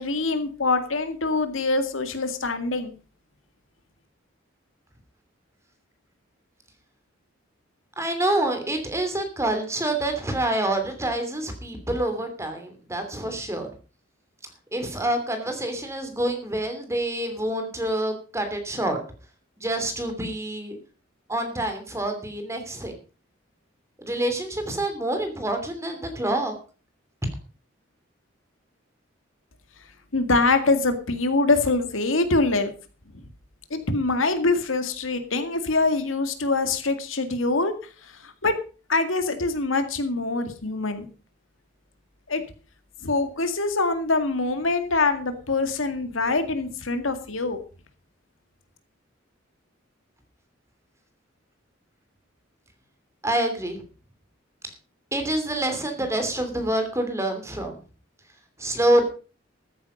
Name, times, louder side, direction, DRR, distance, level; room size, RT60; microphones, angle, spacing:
voice 1, 0.0-3.0 30.1-32.7 33.1-33.2 33.7-37.7 38.0-38.5 38.9-41.1 42.3-42.4 43.0-47.6, left 3 dB, 85° left, 8 dB, 2.0 m, -24 dB
voice 2, 8.0-13.7 14.7-19.0 19.6-20.8 21.3-22.9 24.0-26.5 53.2-53.8 55.1-57.7 58.6-59.0, right 1 dB, 15° right, 6 dB, 2.9 m, -27 dB
14.0 x 9.6 x 5.2 m, 0.36 s
head